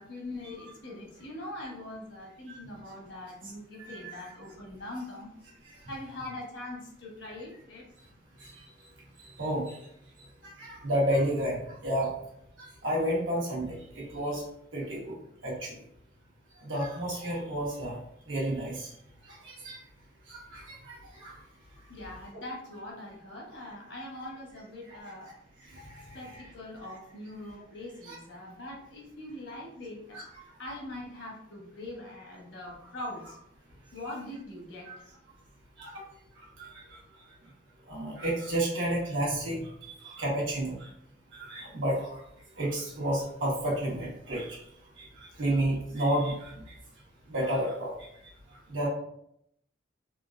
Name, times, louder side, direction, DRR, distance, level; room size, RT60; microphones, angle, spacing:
voice 1, 0.0-5.3 5.9-7.9 21.9-25.3 26.1-33.4 33.9-35.0, left 1 dB, 70° left, -2 dB, 1.2 m, -42 dB
voice 2, 3.8-4.1 7.3-7.4 9.4-9.7 10.6-12.1 12.6-14.4 14.7-15.1 15.4-15.7 16.6-18.0 18.3-18.9 19.4-19.8 20.3-20.9 21.2-21.3 24.9-25.0 25.8-26.0 26.3-26.4 28.1-28.2 30.1-30.2 34.9-35.0 35.8-35.9 36.6-36.7 37.9-39.6 40.0-40.9 41.4-42.1 42.6-44.6 45.0-45.1 45.4-46.5 47.3-47.9 48.7-48.9, right 1 dB, 85° right, -4 dB, 1.2 m, -30 dB
3.7 x 2.5 x 2.5 m, 0.73 s
head